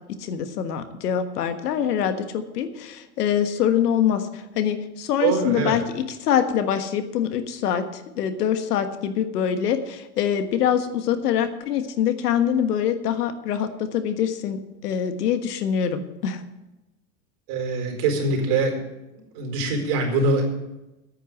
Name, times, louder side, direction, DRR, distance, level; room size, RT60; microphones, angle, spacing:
voice 1, 0.1-16.4, left 9 dB, 80° left, 9 dB, 1.5 m, -24 dB
voice 2, 5.2-5.8 17.5-18.7 19.3-20.4, right 3 dB, 55° right, 1 dB, 4.5 m, -23 dB
9.4 x 9.3 x 8.6 m, 1.0 s
hypercardioid pair, 115°, 47 cm